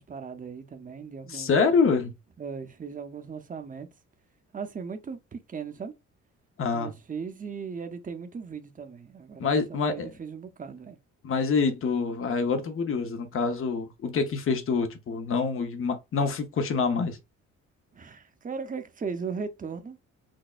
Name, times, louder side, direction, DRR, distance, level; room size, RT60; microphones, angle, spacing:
voice 1, 0.0-1.5 2.4-3.9 4.5-5.9 6.7-11.0 17.9-20.0, right 5 dB, 25° right, 0.7 m, -38 dB
voice 2, 1.3-2.1 6.6-6.9 9.4-10.1 11.2-17.2, left 5 dB, 45° left, 0.8 m, -26 dB
6.1 x 2.1 x 2.4 m
cardioid pair, 90°, 30 cm